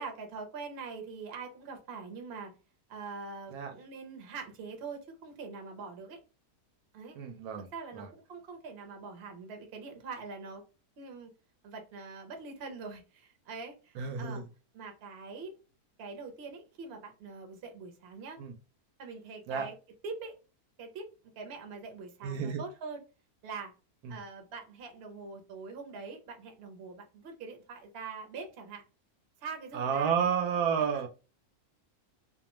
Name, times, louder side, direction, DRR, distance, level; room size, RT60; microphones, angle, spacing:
voice 1, 0.0-2.5 2.9-6.2 6.9-7.2 7.6-10.6 11.0-11.3 11.6-14.5 14.7-15.5 16.0-18.4 19.0-19.8 20.0-20.3 20.8-21.1 21.4-23.0 23.4-23.7 24.1-28.8 29.4-30.2 30.8-31.0, right 4 dB, 50° right, 0.8 m, -43 dB
voice 2, 7.2-7.7 7.9-8.1 14.0-14.4 18.4-18.5 19.5-19.7 22.2-22.6 24.0-24.2 29.7-31.1, right 7 dB, 80° right, 1.1 m, -31 dB
2.5 x 2.2 x 2.9 m
omnidirectional pair, 1.6 m